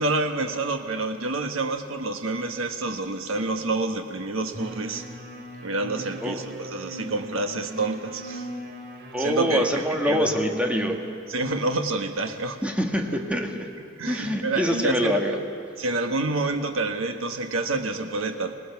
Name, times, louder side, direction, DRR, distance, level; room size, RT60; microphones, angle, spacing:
voice 1, 0.0-5.1 5.6-8.5 9.2-10.3 11.3-12.6 14.0-15.2 15.8-18.5, right 2 dB, 80° right, 6 dB, 1.4 m, -28 dB
sound 1, 4.5-11.0, right 1 dB, 55° right, 2.5 m, -38 dB
voice 2, 9.1-11.0 12.6-13.7 14.0-15.4, equal, 5° right, 2 dB, 1.5 m, -25 dB
26.5 x 19.0 x 5.9 m, 2.5 s
head